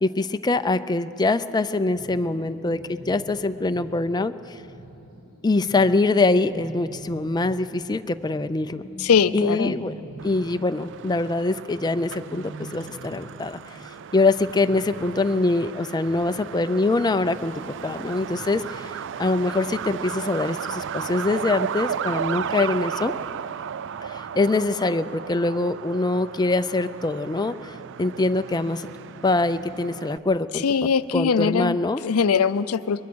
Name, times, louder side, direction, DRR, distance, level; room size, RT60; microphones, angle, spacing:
voice 1, 0.0-4.6 5.4-8.8 9.3-9.9 10.2-13.6 14.1-23.1 24.0-28.9 29.2-30.6 31.1-32.0, left 2 dB, 20° left, 10 dB, 0.4 m, -24 dB
sound 1, 1.9-13.6 13.9-14.0 14.3-15.3 15.6-16.7 17.0-18.6 19.9-20.3 20.7-20.8, right 1 dB, 25° right, 4.2 m, -44 dB
voice 2, 9.0-9.8 30.5-31.8 32.0-33.0, left 6 dB, 80° left, 15 dB, 0.5 m, -21 dB
Truck, 10.2-30.2, right 8 dB, 60° right, 0.4 m, -35 dB
22.0 x 21.5 x 6.2 m, 2.9 s
head